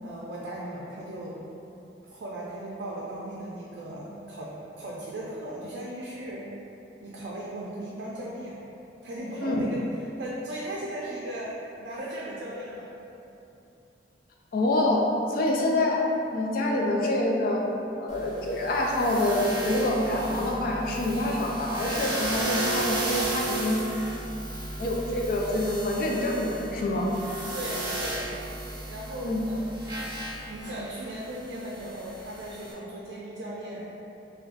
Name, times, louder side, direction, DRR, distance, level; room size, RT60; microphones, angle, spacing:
voice 1, 0.0-1.4 2.0-6.5 7.0-8.6 9.0-9.8 10.2-12.9 27.5-28.3 28.9-30.0 30.5-33.8, right 1 dB, 90° right, -5 dB, 0.4 m, -37 dB
voice 2, 14.5-15.0 15.3-16.0 16.3-17.7 18.0-23.8 24.8-27.1 29.2-29.4, left 1 dB, 55° left, -1 dB, 0.4 m, -26 dB
sound 1, 18.1-32.7, right 1 dB, 25° right, 0.5 m, -35 dB
2.5 x 2.1 x 3.8 m, 2.8 s
head